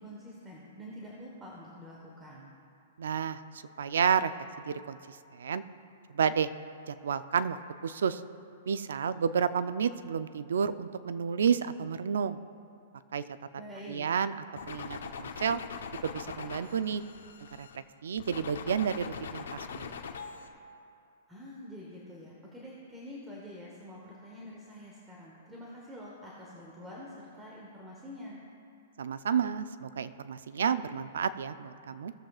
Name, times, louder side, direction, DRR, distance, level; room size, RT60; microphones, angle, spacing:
voice 1, 0.0-2.5 13.6-14.1 21.3-28.4, equal, 10° right, -4 dB, 1.2 m, -46 dB
voice 2, 3.0-3.4 3.8-4.3 4.7-5.6 6.1-6.5 6.9-7.6 7.8-8.2 8.7-12.4 13.1-13.2 13.9-15.6 16.0-17.0 17.6-19.9 29.0-32.1, right 7 dB, 85° right, 13 dB, 0.4 m, -30 dB
sound 1, 14.6-17.8 18.2-20.5, left 6 dB, 90° left, 0.9 m, -42 dB
17.0 x 7.6 x 2.4 m, 2.6 s
hypercardioid pair, 155°, 0 cm